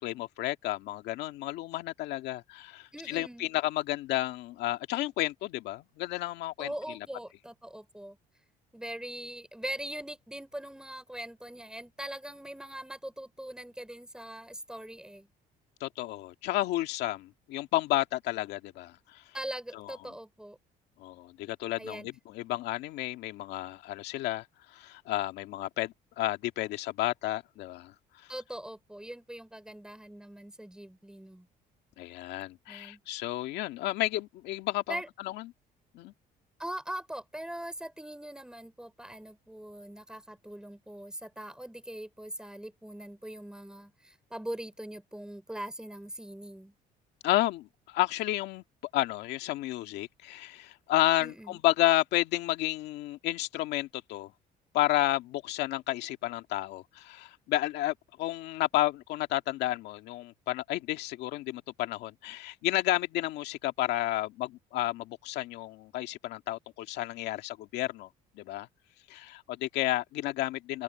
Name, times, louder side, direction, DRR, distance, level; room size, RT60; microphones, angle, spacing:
voice 1, 0.0-6.7 15.8-19.2 19.7-19.9 21.0-27.9 32.0-35.5 35.9-36.1 47.2-48.6 48.9-54.3 54.7-68.1 68.4-68.7 69.1-70.8, left 15 dB, 85° left, 2.0 m, -31 dB
voice 2, 2.9-3.5 6.6-8.2 8.7-15.3 19.3-20.6 21.8-22.1 28.3-31.5 32.7-33.0 34.9-35.1 36.6-46.7 51.2-51.6, right 1 dB, 5° right, 4.6 m, -41 dB
open air
cardioid pair, 110°, 17 cm